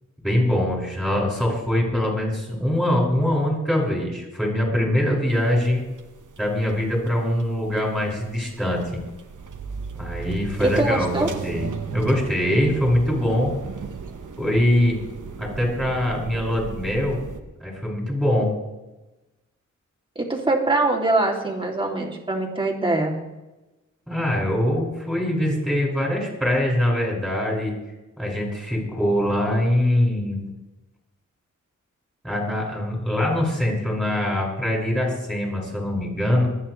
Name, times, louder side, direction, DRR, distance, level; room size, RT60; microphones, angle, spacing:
voice 1, 0.2-5.8 6.4-9.0 10.0-13.5 14.4-15.0 15.4-17.2 17.6-18.5 24.1-27.7 28.2-30.4 32.2-36.5, left 1 dB, ahead, -3 dB, 5.9 m, -23 dB
sound 1, 5.3-17.4, right 5 dB, 75° right, 1.2 m, -36 dB
voice 2, 10.6-11.3 20.2-23.2, right 2 dB, 15° right, -1 dB, 2.8 m, -23 dB
25.5 x 9.5 x 3.3 m, 1.0 s
wide cardioid pair, 95°, 31 cm